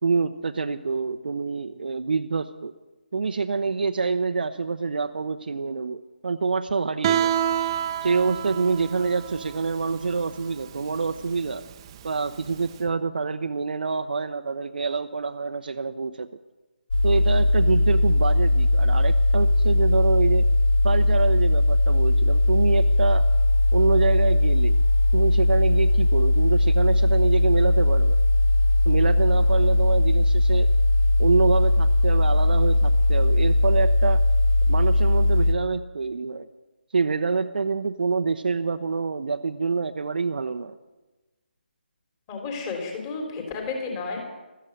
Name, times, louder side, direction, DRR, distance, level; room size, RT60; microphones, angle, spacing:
voice 1, 0.0-2.7 3.1-7.3 8.0-11.6 12.0-16.3 17.0-20.5 20.8-23.3 23.7-24.8 25.1-28.2 28.9-30.7 31.2-34.2 34.7-36.5 36.9-40.8, right 4 dB, 60° right, 7 dB, 0.7 m, -26 dB
Guitar, 7.0-12.7, right 10 dB, 25° right, 0.8 m, -29 dB
sound 1, 16.9-35.5, left 2 dB, 55° left, 1.4 m, -19 dB
voice 2, 42.3-44.2, left 4 dB, 20° left, 2 dB, 3.5 m, -32 dB
16.0 x 13.5 x 6.6 m, 1.2 s
figure-of-eight pair, 150°, 6 cm